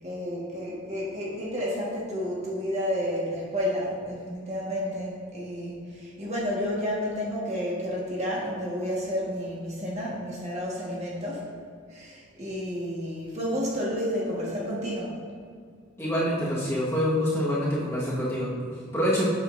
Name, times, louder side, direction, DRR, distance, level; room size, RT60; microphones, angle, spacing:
voice 1, 0.0-11.5 11.9-15.2, equal, 30° right, -5 dB, 1.4 m, -31 dB
voice 2, 16.0-19.3, equal, 10° left, -8 dB, 1.4 m, -26 dB
8.2 x 7.0 x 2.6 m, 2.1 s
head